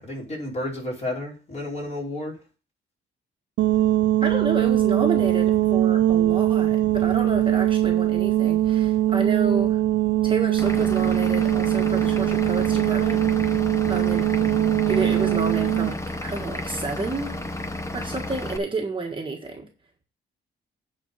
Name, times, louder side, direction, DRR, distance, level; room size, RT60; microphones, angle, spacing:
voice 1, 0.0-2.3, left 1 dB, 30° left, 5.1 m, -31 dB
sound 1, 3.6-15.9, right 13 dB, 65° right, 0.5 m, -21 dB
voice 2, 4.2-9.8 10.2-13.6 13.9-14.3 14.9-17.3 17.9-19.7, right 3 dB, 25° right, 1.5 m, -30 dB
Vehicle / Engine, 10.6-18.6, left 1 dB, 15° left, 1.0 m, -32 dB
9.3 x 4.6 x 7.2 m
cardioid pair, 115°, 21 cm